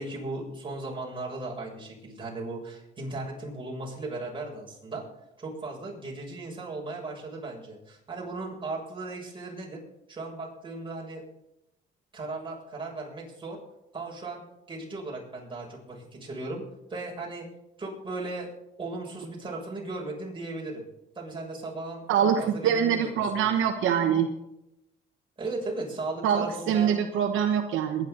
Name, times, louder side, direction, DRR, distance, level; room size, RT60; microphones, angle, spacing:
voice 1, 0.0-5.0 5.4-9.8 10.1-11.2 12.1-13.6 13.9-14.4 14.7-16.6 16.9-17.5 17.8-18.5 18.8-20.8 21.1-22.1 22.4-23.5 25.4-27.0, right 2 dB, 25° right, -3 dB, 6.6 m, -36 dB
voice 2, 22.1-24.3 26.2-28.1, right 8 dB, 85° right, 5 dB, 1.1 m, -24 dB
22.0 x 10.5 x 3.9 m, 0.87 s
cardioid pair, 90°, 20 cm